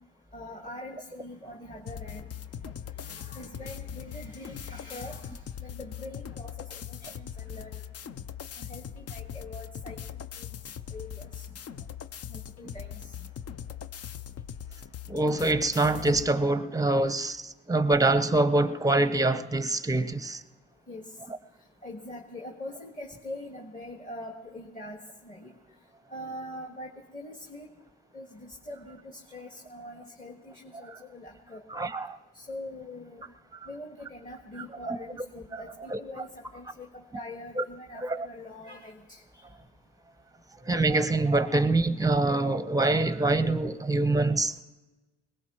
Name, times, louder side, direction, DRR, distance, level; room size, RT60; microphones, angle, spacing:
voice 1, 0.3-2.3 3.0-7.8 8.6-10.5 10.9-11.4 12.3-13.1 20.9-21.0 21.8-25.0 25.2-25.5 26.1-27.7 28.1-31.6 32.3-33.2 33.7-39.2, left 1 dB, 25° left, 1.7 m, -43 dB
sound 1, 1.9-16.3, left 9 dB, 55° left, 0.6 m, -41 dB
voice 2, 15.1-20.4 31.7-32.2 34.9-35.0 35.5-35.6 35.9-36.0 37.6-37.7 38.0-38.3 40.6-44.6, right 2 dB, 10° right, 0.7 m, -25 dB
21.5 x 19.0 x 3.0 m
cardioid pair, 90°, 30 cm